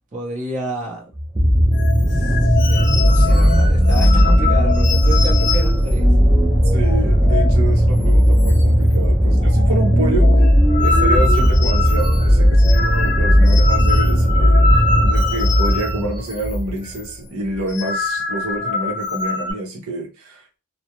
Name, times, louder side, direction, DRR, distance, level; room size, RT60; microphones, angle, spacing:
voice 1, 0.1-1.0 2.1-6.1, right 1 dB, 35° right, 0.8 m, -29 dB
sound 1, 1.1-16.7 17.5-17.6, equal, 15° right, 0.4 m, -15 dB
sound 2, 1.7-7.7 8.0-8.1 8.4-8.9 9.2-16.6 16.8-17.1 17.5-19.5, left 4 dB, 55° left, 0.6 m, -25 dB
voice 2, 6.7-10.3 10.8-20.6, right 1 dB, 75° right, 0.8 m, -28 dB
2.3 x 2.1 x 2.9 m
head